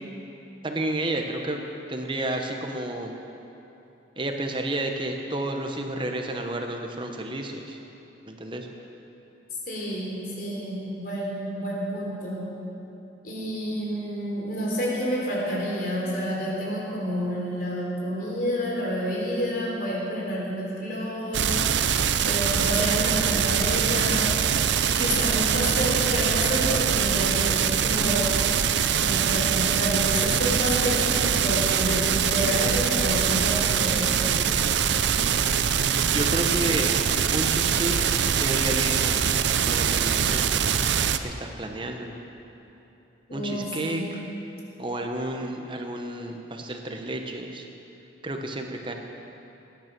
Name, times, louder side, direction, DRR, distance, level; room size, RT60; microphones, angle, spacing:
voice 1, 0.6-1.6 1.9-3.1 4.2-7.8 8.3-8.7 36.0-37.1 37.3-38.1 38.4-39.4 39.7-40.7 41.2-42.1 43.3-44.2 44.8-47.7 48.2-48.9, right 1 dB, 25° right, 3 dB, 1.0 m, -31 dB
voice 2, 9.7-12.5 13.2-21.6 22.2-24.4 24.9-28.4 29.0-34.3 43.3-44.1, equal, 50° left, -4 dB, 3.7 m, -29 dB
sound 1, 21.3-41.2, right 8 dB, 70° right, 0.6 m, -23 dB
20.0 x 9.6 x 6.0 m, 3.0 s
head